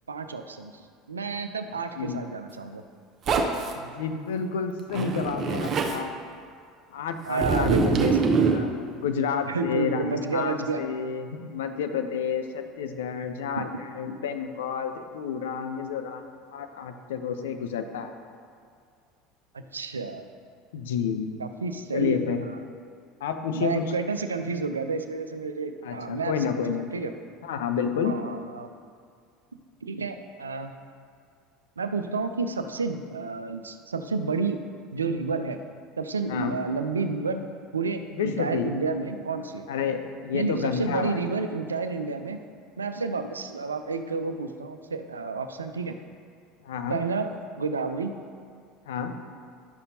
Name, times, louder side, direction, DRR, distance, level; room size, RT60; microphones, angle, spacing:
voice 1, 0.1-2.8 7.3-8.2 9.5-10.9 13.6-13.8 19.5-20.3 21.4-22.6 23.5-26.7 26.9-27.1 28.0-28.7 29.8-30.8 31.8-35.6 36.0-39.7 40.3-42.4 42.8-46.0 46.9-48.2, right 4 dB, 80° right, 8 dB, 0.4 m, -30 dB
Zipper (clothing), 3.3-3.7 4.9-6.0 7.4-8.6, right 4 dB, 35° right, 0.7 m, -24 dB
voice 2, 3.7-6.1 6.9-8.2 8.5-18.1 20.7-21.3 21.9-22.4 23.2-23.9 25.8-26.9 27.4-28.2 36.3-36.6 38.2-38.7 39.7-41.2 46.6-47.0 48.9-49.1, left 6 dB, 65° left, 7 dB, 0.6 m, -30 dB
11.5 x 6.7 x 2.8 m, 2.2 s
figure-of-eight pair, 70°, 0 cm